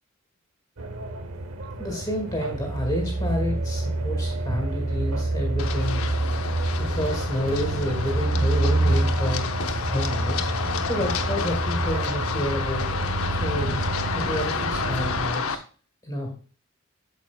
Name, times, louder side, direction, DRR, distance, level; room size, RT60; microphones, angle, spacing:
sound 1, 0.8-15.3, right 2 dB, 90° right, 0.9 m, -27 dB
voice 1, 1.8-6.5 6.8-9.5 9.9-10.5 10.9-13.0 13.3-13.8 14.1-15.6 16.0-16.3, equal, 20° left, 1 dB, 1.7 m, -30 dB
Run, 5.6-15.5, left 5 dB, 90° left, 0.7 m, -30 dB
8.7 x 6.8 x 2.3 m, 0.40 s
head